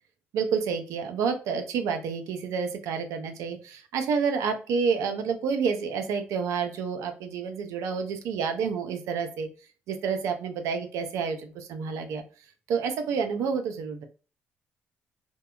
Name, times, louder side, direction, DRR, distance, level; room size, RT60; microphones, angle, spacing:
voice 1, 0.3-9.5 9.9-12.2 12.7-14.0, right 6 dB, 75° right, 6 dB, 0.5 m, -29 dB
2.6 x 2.2 x 2.2 m, 0.37 s
hypercardioid pair, 50°, 5 cm